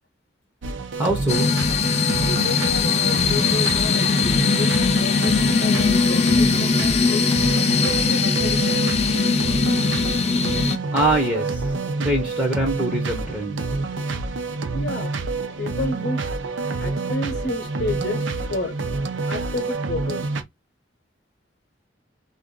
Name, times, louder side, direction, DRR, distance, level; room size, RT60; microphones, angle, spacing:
sound 1, 0.6-20.4, right 3 dB, 80° right, 0.5 m, -27 dB
voice 1, 1.0-1.5 10.9-11.7 12.0-13.6, right 1 dB, 10° right, 0.7 m, -23 dB
sound 2, 1.3-10.8, left 5 dB, 35° left, 0.5 m, -20 dB
voice 2, 2.3-7.3 7.8-9.0 14.7-15.1 15.6-16.2 16.8-18.7 19.3-20.2, left 2 dB, 55° left, 0.8 m, -31 dB
2.6 x 2.4 x 3.6 m
head